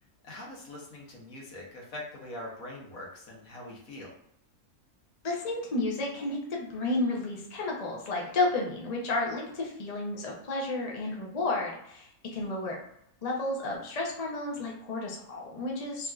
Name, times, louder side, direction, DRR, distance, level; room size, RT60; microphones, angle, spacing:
voice 1, 0.2-4.1, left 1 dB, 70° left, -3 dB, 1.3 m, -43 dB
voice 2, 5.2-12.7 13.2-16.1, left 2 dB, 45° left, -2 dB, 0.5 m, -32 dB
3.4 x 2.6 x 2.3 m, 0.76 s
omnidirectional pair, 1.5 m